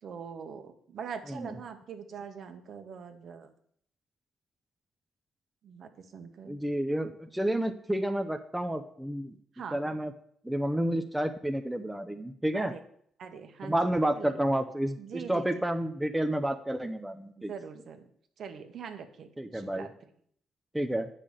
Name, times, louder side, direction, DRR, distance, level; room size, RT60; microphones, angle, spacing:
voice 1, 0.0-3.5 5.6-6.6 9.5-10.0 12.5-12.8 13.2-14.4 15.0-15.6 17.4-18.1 18.4-20.1, right 6 dB, 60° right, 7 dB, 1.2 m, -43 dB
voice 2, 6.5-9.3 9.7-10.1 10.4-12.7 13.6-17.5 19.4-19.9 20.7-21.1, right 1 dB, 5° right, 7 dB, 0.7 m, -30 dB
8.5 x 5.7 x 6.6 m, 0.63 s
cardioid pair, 90°, 0 cm